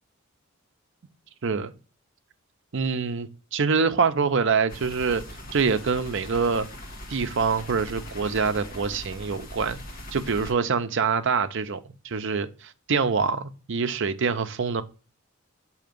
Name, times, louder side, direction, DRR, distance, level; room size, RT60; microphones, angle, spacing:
voice 1, 1.4-1.7 2.7-5.2 5.5-6.7 7.1-9.8 10.1-14.8, right 5 dB, 60° right, 0.6 m, -25 dB
sound 1, 4.7-10.5, left 1 dB, 45° left, 1.2 m, -40 dB
7.7 x 2.8 x 5.1 m
head